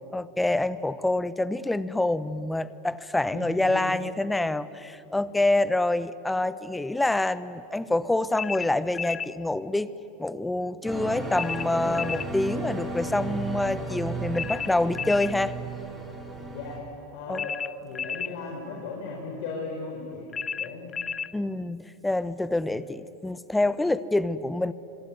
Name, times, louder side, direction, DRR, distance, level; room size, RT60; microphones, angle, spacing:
voice 1, 0.1-9.9 10.2-15.6 17.3-17.4 21.3-24.7, left 2 dB, 10° left, 15 dB, 1.0 m, -26 dB
voice 2, 3.3-3.8 16.5-16.8 17.1-17.6 17.8-20.3 20.6-20.9, left 4 dB, 65° left, 0 dB, 4.6 m, -36 dB
sound 1, 8.4-9.3 11.3-12.3 14.3-15.4 17.3-18.4 20.3-21.3, left 6 dB, 25° left, 0.6 m, -33 dB
sound 2, 10.8-16.8, right 2 dB, 10° right, 7.7 m, -34 dB
26.5 x 21.5 x 9.7 m, 3.0 s
hypercardioid pair, 105°, 0 cm